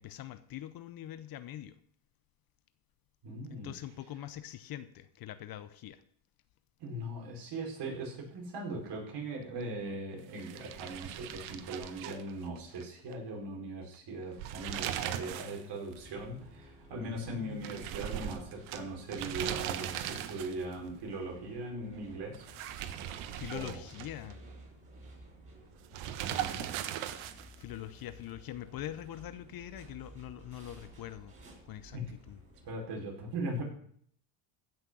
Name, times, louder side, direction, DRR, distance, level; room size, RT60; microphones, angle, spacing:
voice 1, 0.0-1.8 3.5-6.0 17.0-17.8 23.1-24.4 27.6-31.3 31.7-32.0 32.3-32.4, left 13 dB, 45° left, 13 dB, 0.8 m, -43 dB
voice 2, 3.2-3.7 6.8-22.4 23.5-23.8 26.2-26.7 31.9-32.1 32.7-33.6, right 2 dB, 50° right, -1 dB, 5.1 m, -39 dB
sound 1, 10.4-12.8 13.1-13.2 14.2-15.6 15.9-16.0 17.6-20.7 22.3-24.3 25.9-27.6, right 11 dB, 70° right, 1.3 m, -39 dB
sound 2, 15.9-32.8, right 1 dB, 25° right, 5.9 m, -55 dB
15.5 x 6.4 x 6.3 m, 0.63 s
supercardioid pair, 105°, 50 cm